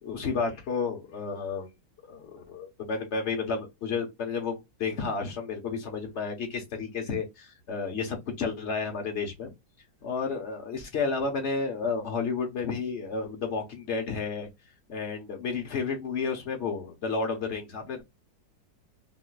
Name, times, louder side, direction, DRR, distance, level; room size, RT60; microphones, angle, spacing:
voice 1, 0.0-1.7 2.1-9.5 10.0-14.5 14.9-18.0, left 4 dB, 45° left, 1.2 m, -31 dB
3.7 x 3.0 x 2.3 m
omnidirectional pair, 2.0 m